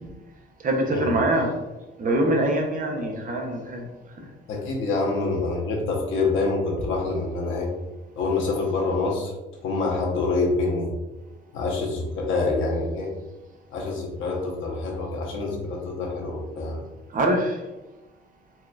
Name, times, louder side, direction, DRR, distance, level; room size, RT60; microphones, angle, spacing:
voice 1, 0.6-1.5 2.0-3.8 17.1-17.6, right 1 dB, 45° right, 2 dB, 0.7 m, -23 dB
voice 2, 4.5-7.7 8.2-9.3 9.6-10.9 11.5-13.1 13.7-16.8, left 3 dB, 80° left, -2 dB, 0.9 m, -26 dB
4.1 x 2.3 x 2.3 m, 1.1 s
cardioid pair, 90°, 20 cm